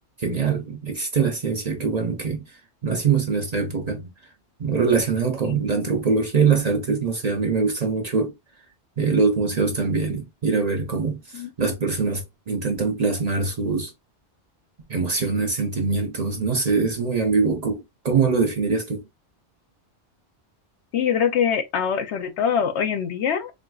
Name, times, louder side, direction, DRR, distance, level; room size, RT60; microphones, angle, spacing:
voice 1, 0.2-2.6 2.8-4.1 4.6-8.3 9.0-13.9 14.9-19.0, right 5 dB, 45° right, 0.7 m, -23 dB
voice 2, 20.9-23.5, left 7 dB, 75° left, 0.9 m, -23 dB
3.8 x 2.5 x 2.3 m
omnidirectional pair, 1.2 m